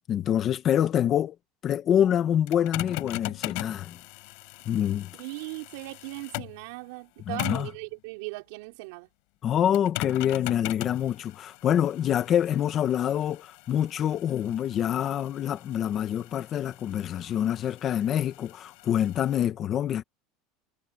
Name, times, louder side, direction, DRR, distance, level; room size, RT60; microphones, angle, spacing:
voice 1, 0.1-1.3 1.6-4.0 4.6-5.1 7.2-7.7 9.4-20.0, left 10 dB, 30° left, 1.2 m, -26 dB
sound 1, 2.5-6.6 7.4-7.8 9.7-19.4, left 33 dB, 60° left, 5.3 m, -40 dB
voice 2, 5.2-9.1, right 26 dB, 65° right, 4.8 m, -38 dB
cardioid pair, 170°, 0 cm